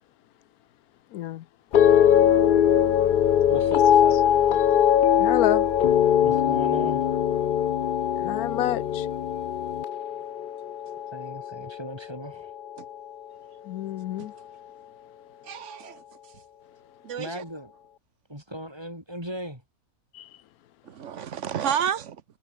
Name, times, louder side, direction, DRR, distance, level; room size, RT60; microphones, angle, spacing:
voice 1, 1.1-1.4 5.1-5.7 8.2-9.1 13.6-14.3 20.1-20.3, left 13 dB, 85° left, 1.1 m, -29 dB
sound 1, 1.7-12.1 12.4-13.0, left 9 dB, 55° left, 0.5 m, -21 dB
voice 2, 3.5-4.6 6.2-7.1 11.1-12.5 17.2-17.7 18.3-19.6, equal, 15° right, 8.0 m, -37 dB
voice 3, 15.4-16.0 17.0-17.4 20.9-22.2, right 8 dB, 60° right, 1.1 m, -30 dB
omnidirectional pair, 1.5 m